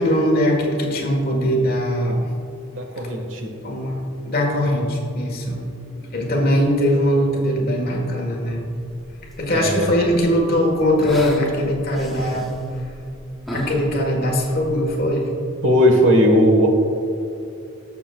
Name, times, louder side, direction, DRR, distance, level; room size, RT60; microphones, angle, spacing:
voice 1, 0.0-2.3 3.6-8.7 9.4-12.8 13.5-15.3, equal, 45° left, 1 dB, 1.5 m, -21 dB
voice 2, 2.7-3.5 9.5-9.9 11.2-11.5 15.6-16.7, equal, 65° right, 2 dB, 1.5 m, -17 dB
sound 1, 8.8-15.1, left 1 dB, ahead, 0.9 m, -34 dB
18.5 x 6.9 x 2.4 m, 2.7 s
head